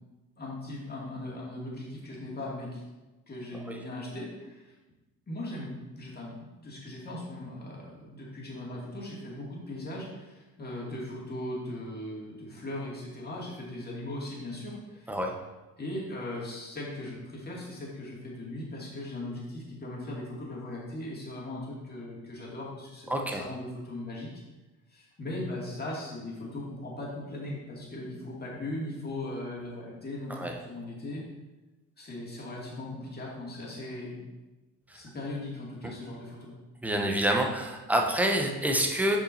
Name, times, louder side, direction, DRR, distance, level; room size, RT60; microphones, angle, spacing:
voice 1, 0.4-2.8 3.3-4.7 5.3-15.2 15.8-24.3 24.9-31.3 32.0-34.2 34.9-36.5, left 1 dB, 20° left, -4 dB, 2.4 m, -39 dB
voice 2, 23.1-23.4 30.3-30.6 34.9-35.0 36.8-39.2, right 1 dB, 5° right, 2 dB, 0.8 m, -27 dB
8.4 x 6.0 x 2.7 m, 1.1 s
figure-of-eight pair, 55°, 46 cm